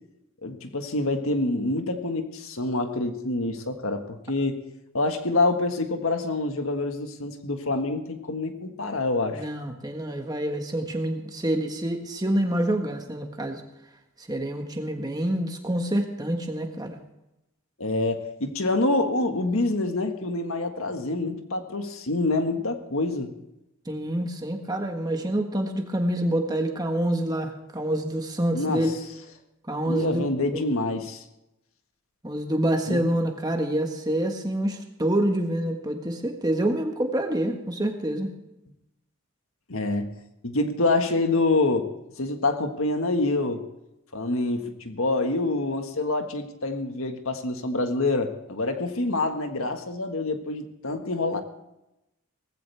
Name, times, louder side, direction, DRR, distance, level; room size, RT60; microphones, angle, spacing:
voice 1, 0.4-4.6 4.9-9.5 17.8-23.3 28.5-29.0 29.8-31.2 32.9-33.0 39.7-40.1 40.4-41.9 42.2-43.6 44.1-51.4, left 2 dB, 75° left, 6 dB, 1.6 m, -26 dB
voice 2, 9.3-13.6 14.3-17.0 23.9-28.9 29.7-30.3 30.5-30.6 32.2-38.3, right 1 dB, 20° right, 3 dB, 1.5 m, -27 dB
18.5 x 15.5 x 3.4 m, 0.91 s
head